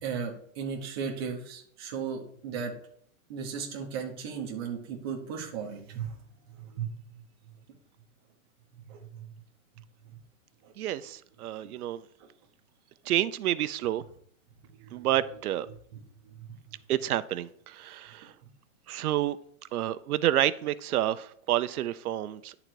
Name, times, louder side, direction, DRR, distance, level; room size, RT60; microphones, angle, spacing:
voice 1, 0.0-2.7 3.3-6.2 6.6-6.9 8.9-9.2 10.6-10.7 11.5-11.6 14.8-15.1 16.2-16.3, right 6 dB, 20° right, -2 dB, 0.7 m, -36 dB
voice 2, 10.8-12.0 13.1-14.0 14.9-15.7 16.9-18.3 18.9-19.4 19.7-22.5, right 13 dB, 90° right, 13 dB, 0.6 m, -29 dB
10.5 x 3.9 x 4.6 m, 0.63 s
hypercardioid pair, 175°, 43 cm